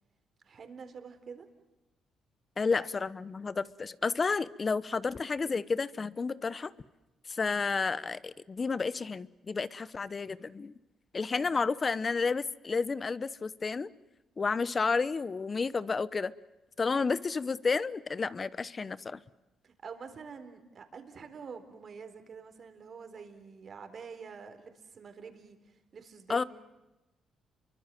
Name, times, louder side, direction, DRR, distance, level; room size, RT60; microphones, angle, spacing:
voice 1, 0.4-1.5 11.4-11.5 16.9-17.1 19.6-26.5, right 5 dB, 50° right, 3.9 m, -47 dB
voice 2, 2.6-6.7 7.3-10.7 11.1-13.9 14.4-16.3 16.8-19.2 26.3-26.4, left 4 dB, 35° left, 1.0 m, -31 dB
29.5 x 24.0 x 7.6 m
cardioid pair, 90°, 0 cm